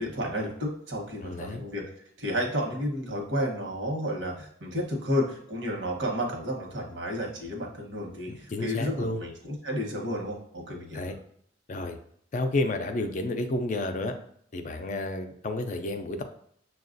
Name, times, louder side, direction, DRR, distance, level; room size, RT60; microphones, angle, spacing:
voice 1, 0.0-1.8 2.2-11.2, equal, 80° right, 0 dB, 1.0 m, -31 dB
voice 2, 1.2-1.6 8.3-9.2 10.9-11.2 11.7-12.0 12.3-14.1 14.5-16.2, left 2 dB, 40° left, 6 dB, 0.4 m, -31 dB
6.6 x 2.3 x 2.5 m, 0.67 s
head